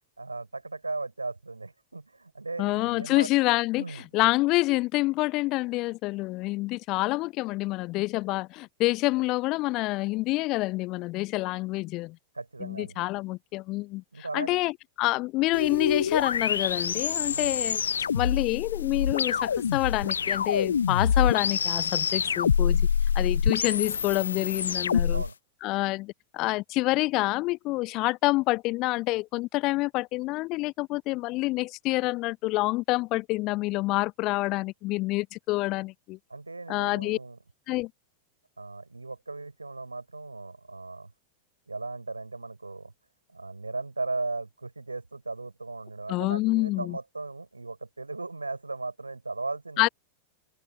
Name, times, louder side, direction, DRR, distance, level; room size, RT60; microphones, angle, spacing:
voice 1, 0.2-3.3 3.8-4.0 12.3-13.1 14.1-14.6 17.3-17.6 25.1-25.3 36.3-37.4 38.6-41.1 41.7-42.9 43.3-49.9, right 3 dB, 80° right, 5.8 m, -37 dB
voice 2, 2.6-3.8 4.1-12.2 12.6-17.8 18.1-22.8 23.1-25.2 25.6-36.2 36.7-37.2 37.7-37.9 46.1-47.0 49.8-49.9, left 20 dB, 40° left, 0.8 m, -27 dB
sound 1, 15.5-25.3, left 7 dB, 70° left, 1.0 m, -26 dB
figure-of-eight pair, 90°, 0 cm